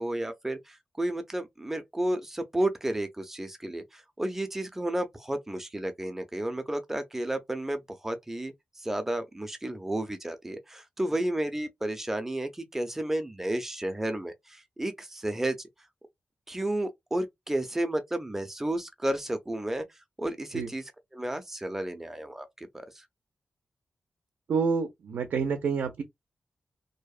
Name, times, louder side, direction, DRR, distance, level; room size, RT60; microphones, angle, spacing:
voice 1, 0.0-15.7 16.5-19.9 20.2-20.8 21.1-22.5 22.7-23.0, right 1 dB, 10° right, 0.4 m, -32 dB
voice 2, 24.5-26.0, right 5 dB, 80° right, 0.4 m, -28 dB
2.7 x 2.0 x 2.3 m
wide cardioid pair, 160°, 3 cm